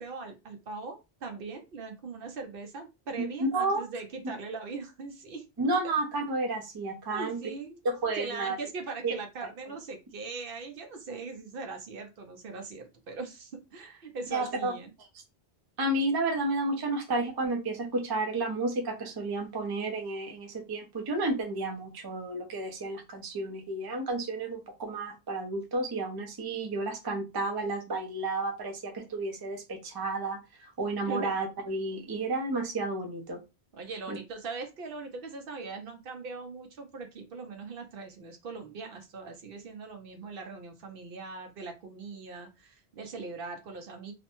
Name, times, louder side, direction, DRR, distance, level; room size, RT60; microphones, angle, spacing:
voice 1, 0.0-5.5 7.1-7.8 8.2-14.9 31.1-31.3 33.7-44.1, right 4 dB, 65° right, 5 dB, 0.7 m, -40 dB
voice 2, 3.2-3.8 5.6-7.4 7.8-8.6 9.0-9.1 14.3-14.7 15.8-30.4 30.8-33.4 34.1-34.2, right 2 dB, 30° right, 3 dB, 0.4 m, -31 dB
2.5 x 2.1 x 2.8 m, 0.25 s
omnidirectional pair, 1.1 m